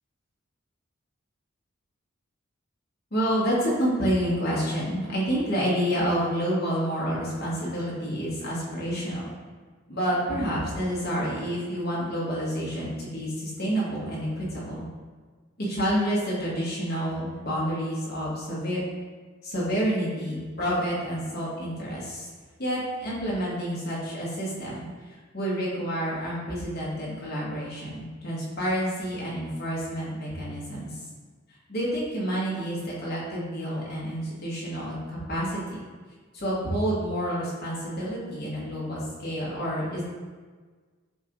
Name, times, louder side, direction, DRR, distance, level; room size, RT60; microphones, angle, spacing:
voice 1, 3.1-9.3 9.9-14.9 15.6-18.8 19.4-22.3 22.6-24.8 25.1-31.0 31.7-35.8 36.3-40.0, equal, 50° left, -6 dB, 1.3 m, -29 dB
6.9 x 2.5 x 3.0 m, 1.4 s
head